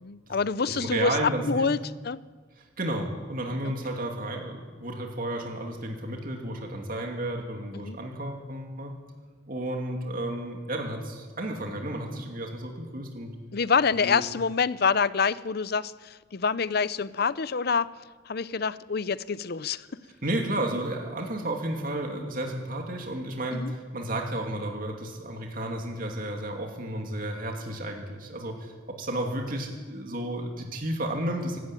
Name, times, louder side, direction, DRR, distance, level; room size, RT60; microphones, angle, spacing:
voice 1, 0.0-1.8 2.0-2.2 7.8-8.0 13.5-17.9 18.3-19.9 23.5-23.7, left 5 dB, 55° left, 17 dB, 0.6 m, -26 dB
voice 2, 0.6-1.7 2.6-8.9 9.5-13.3 14.0-14.2 20.2-28.7 29.0-31.6, right 1 dB, 45° right, 2 dB, 2.7 m, -32 dB
24.5 x 12.5 x 9.1 m, 1.5 s
head